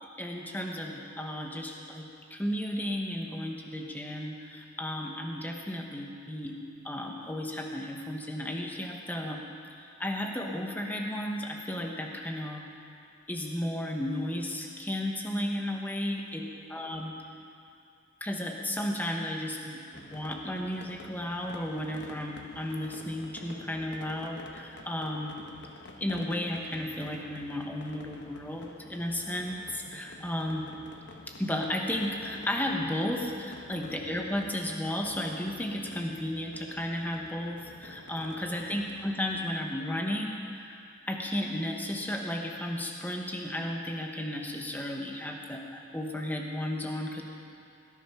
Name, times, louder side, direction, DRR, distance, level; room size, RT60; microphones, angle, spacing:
voice 1, 0.0-9.4 9.8-12.6 13.3-17.1 18.2-25.4 26.0-30.7 31.4-47.2, left 1 dB, 10° left, 1 dB, 1.2 m, -34 dB
sound 1, 19.9-39.4, left 2 dB, 60° left, 1.1 m, -49 dB
18.0 x 11.5 x 5.8 m, 2.5 s
head